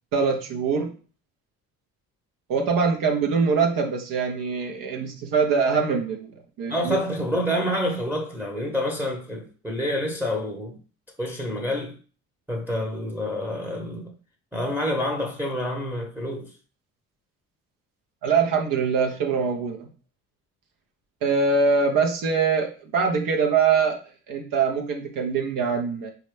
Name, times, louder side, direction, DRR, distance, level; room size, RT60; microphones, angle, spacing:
voice 1, 0.1-0.9 2.5-6.3 6.6-7.0 18.2-19.9 21.2-24.0 24.3-26.1, right 5 dB, 70° right, 0.8 m, -23 dB
voice 2, 6.7-10.8 11.2-12.0 12.5-14.1 14.5-16.5, left 1 dB, 5° right, 0.8 m, -28 dB
4.2 x 2.4 x 3.2 m
supercardioid pair, 65°, 35 cm